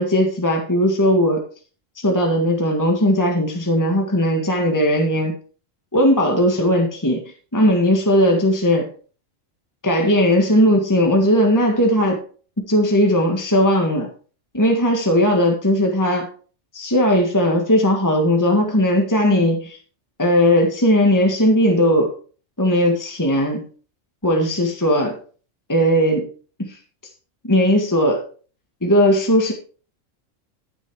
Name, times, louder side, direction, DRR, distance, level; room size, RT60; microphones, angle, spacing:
voice 1, 0.0-1.4 2.0-5.4 5.9-8.9 9.8-12.2 12.6-14.1 14.5-16.3 16.7-19.8 20.2-22.1 22.6-23.7 24.2-25.2 25.7-26.3 26.6-26.8 27.4-28.2 28.8-29.5, equal, 15° left, 1 dB, 1.7 m, -18 dB
13.0 x 6.2 x 4.7 m, 0.40 s
omnidirectional pair, 1.4 m